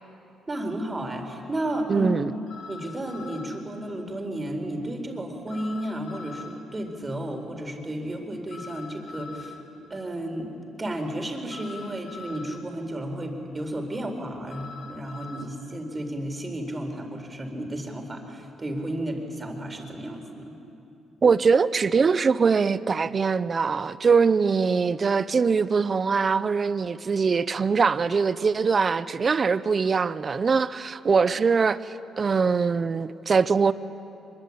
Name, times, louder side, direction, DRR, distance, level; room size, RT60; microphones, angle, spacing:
sound 1, 0.5-0.6 2.5-3.6 5.5-6.6 8.5-9.6 11.5-12.6 14.5-15.4, left 5 dB, 70° left, 3.1 m, -43 dB
voice 1, 0.5-2.1 2.7-9.6 9.9-10.5 10.8-20.6, right 1 dB, 25° right, 4.2 m, -33 dB
voice 2, 1.9-2.3 21.2-33.7, right 5 dB, 40° right, 0.7 m, -22 dB
24.5 x 22.5 x 8.6 m
cardioid pair, 90°, 0 cm